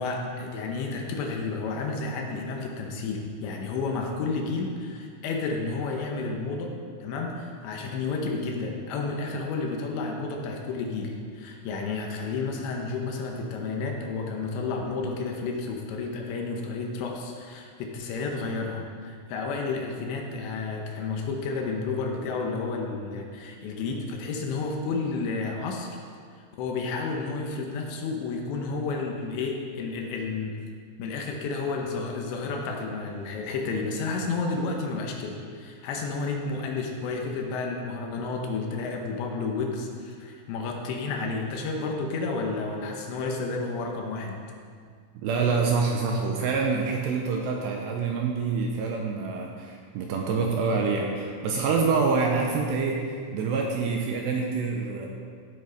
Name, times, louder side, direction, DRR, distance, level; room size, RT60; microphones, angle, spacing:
voice 1, 0.0-6.7 7.0-26.0 26.3-30.5 31.0-44.4, left 4 dB, 75° left, 1 dB, 3.0 m, -31 dB
voice 2, 45.2-55.1, right 4 dB, 80° right, 1 dB, 2.6 m, -26 dB
15.5 x 7.8 x 3.9 m, 2.1 s
omnidirectional pair, 5.5 m